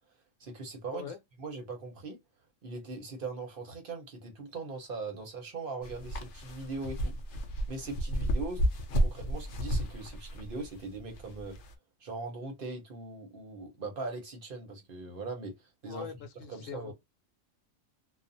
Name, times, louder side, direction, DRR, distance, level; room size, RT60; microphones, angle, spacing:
voice 1, 0.4-1.1 1.4-2.2 2.6-7.1 7.7-8.6 9.0-11.6 12.0-16.1 16.5-16.9, right 3 dB, 50° right, 0.9 m, -40 dB
sound 1, 5.8-11.7, equal, 55° left, 0.6 m, -32 dB
voice 2, 15.9-16.9, left 6 dB, 80° left, 1.0 m, -42 dB
2.5 x 2.3 x 2.5 m
omnidirectional pair, 1.3 m